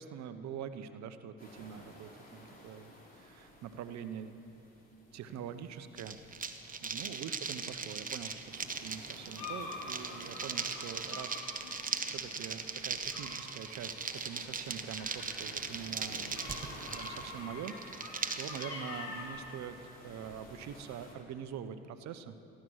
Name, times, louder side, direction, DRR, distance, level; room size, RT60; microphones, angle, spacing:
voice 1, 0.0-4.4 5.1-6.2 6.8-19.8 20.0-22.3, right 8 dB, 65° right, 11 dB, 1.0 m, -44 dB
sound 1, 1.4-21.2, left 1 dB, 30° left, 4.2 m, -55 dB
sound 2, 6.0-18.6, right 5 dB, 30° right, 1.1 m, -39 dB
sound 3, 9.3-19.3, left 3 dB, 70° left, 4.2 m, -47 dB
15.5 x 11.5 x 6.3 m, 2.7 s
supercardioid pair, 70°, 29 cm